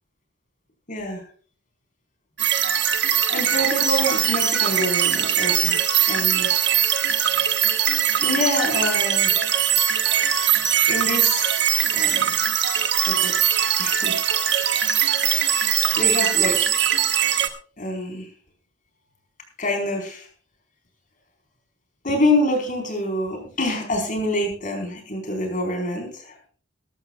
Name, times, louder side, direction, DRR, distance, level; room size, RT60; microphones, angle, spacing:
voice 1, 0.9-1.2 3.3-5.8 6.1-6.5 8.2-9.5 10.9-11.5 11.9-12.4 13.0-13.5 13.8-14.2 14.5-15.0 16.0-16.6 17.8-18.3 19.6-20.3 22.0-26.5, left 1 dB, 40° left, 3 dB, 4.3 m, -26 dB
sound 1, 2.4-17.5, right 9 dB, 55° right, 1.3 m, -21 dB
20.0 x 13.5 x 2.3 m, 0.43 s
head